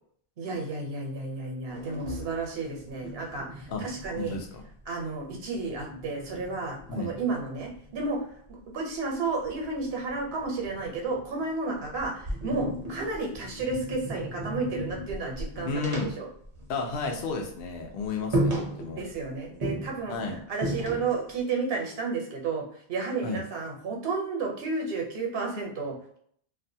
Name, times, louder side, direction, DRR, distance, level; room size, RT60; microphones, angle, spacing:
voice 1, 0.4-4.4 4.9-8.2 8.5-16.3 19.0-20.2 20.5-26.2, right 3 dB, 75° right, 1 dB, 1.0 m, -32 dB
sound 1, 1.7-4.8 5.1-8.1 9.4-11.4 11.9-17.2 17.4-17.6 18.0-18.1 18.3-19.2 19.6-21.3, right 1 dB, 35° right, 0.6 m, -35 dB
voice 2, 4.2-4.6 6.9-7.1 15.6-16.1 16.7-19.0 20.1-20.4 23.2-23.4, left 4 dB, 70° left, 2 dB, 0.8 m, -32 dB
2.5 x 2.2 x 2.6 m, 0.63 s
omnidirectional pair, 1.1 m